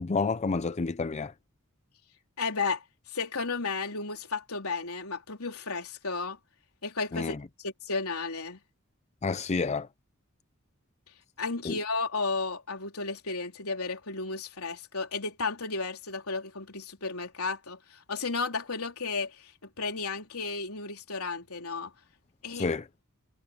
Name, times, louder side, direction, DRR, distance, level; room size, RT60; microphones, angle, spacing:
voice 1, 0.0-1.3 7.1-7.4 9.2-9.9 11.6-11.8 22.5-22.8, left 4 dB, 30° left, 0.5 m, -29 dB
voice 2, 2.4-2.8 3.1-6.4 6.8-8.6 11.4-19.5 19.8-21.9 22.4-22.7, left 4 dB, 85° left, 3.9 m, -33 dB
head